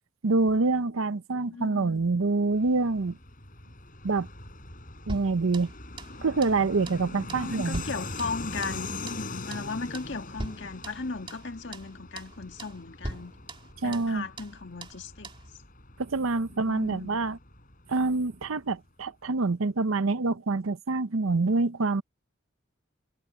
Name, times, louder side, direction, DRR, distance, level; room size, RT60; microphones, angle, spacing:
voice 1, 0.2-3.2 4.0-4.3 5.1-5.7 6.2-7.8 13.8-14.3 16.0-17.4 17.9-22.0, right 3 dB, 80° right, 0.7 m, -26 dB
voice 2, 1.5-2.1 7.3-13.3 13.8-15.3 16.5-17.2, left 4 dB, 55° left, 1.8 m, -37 dB
Fixed-wing aircraft airplane, 2.5-18.7, left 2 dB, 40° left, 7.8 m, -42 dB
sound 1, 5.1-6.2 6.4-6.6 6.9-7.0 7.3-8.8 9.1-9.3 9.5-9.7 9.9-10.1 10.4-11.5 11.7-11.9 12.2-12.3 12.6-12.8 13.0-14.1 14.4-14.5 14.8-15.0 15.2-15.4, right 1 dB, 25° right, 3.0 m, -41 dB
head